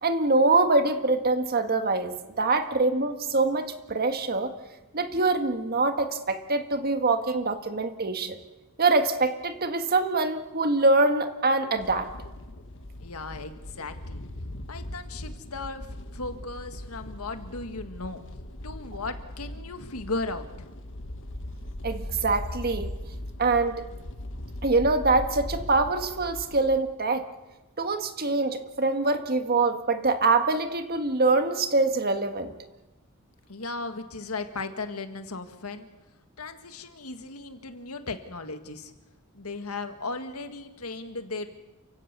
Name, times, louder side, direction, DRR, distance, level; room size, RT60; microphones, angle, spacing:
voice 1, 0.0-4.5 4.9-8.4 8.8-12.1 21.8-22.9 23.4-23.9 24.6-27.3 27.8-32.5, right 3 dB, 45° right, 7 dB, 1.7 m, -24 dB
sound 1, 11.8-26.8, left 1 dB, 60° left, 1.4 m, -39 dB
voice 2, 13.0-14.2 14.7-18.2 18.6-20.7 33.5-35.9 36.4-38.9 39.3-41.5, left 3 dB, 90° left, 8 dB, 1.8 m, -36 dB
29.0 x 16.5 x 6.8 m, 1.1 s
head